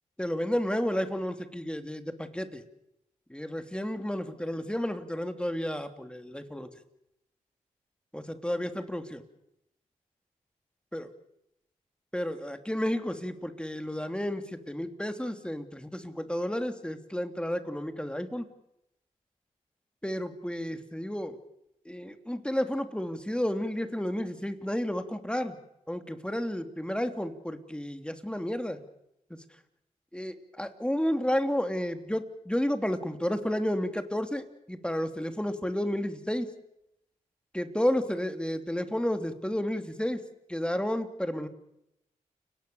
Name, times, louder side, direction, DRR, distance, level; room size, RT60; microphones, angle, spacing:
voice 1, 0.2-2.6 3.3-6.7 8.1-9.2 10.9-11.1 12.1-18.5 20.0-21.4 21.8-25.6 25.9-28.8 30.1-36.5 37.5-40.2 40.5-41.5, equal, 5° left, 7 dB, 3.0 m, -31 dB
30.0 x 18.0 x 7.1 m, 0.83 s
supercardioid pair, 45°, 15 cm